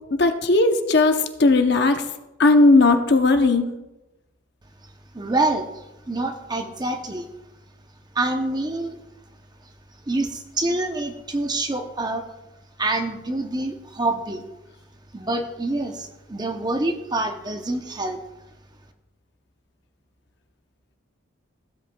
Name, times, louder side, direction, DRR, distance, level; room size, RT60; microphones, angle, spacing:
voice 1, 0.1-2.0 2.4-3.7, left 3 dB, 55° left, 7 dB, 0.7 m, -17 dB
voice 2, 4.8-7.3 8.1-9.0 10.1-12.2 12.8-14.5 15.1-18.2, right 2 dB, 20° right, 6 dB, 0.6 m, -26 dB
16.0 x 8.0 x 2.3 m, 1.0 s
head